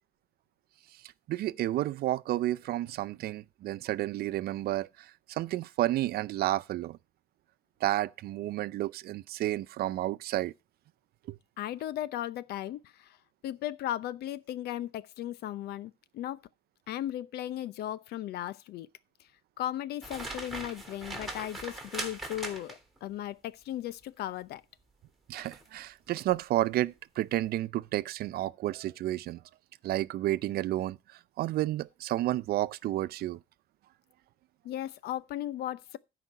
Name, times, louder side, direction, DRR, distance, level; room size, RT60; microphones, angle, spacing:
voice 1, 1.3-4.9 5.3-7.0 7.8-10.5 11.3-11.4 25.3-29.4 29.8-31.0 31.4-33.4, right 15 dB, 65° right, 0.5 m, -31 dB
voice 2, 11.6-13.2 13.4-16.4 16.9-18.9 19.6-24.6 34.6-36.0, left 12 dB, 75° left, 0.7 m, -36 dB
sound 1, 20.0-23.0 25.4-25.7 26.2-26.4, right 2 dB, ahead, 3.3 m, -40 dB
12.5 x 5.1 x 5.7 m
cardioid pair, 110°, 17 cm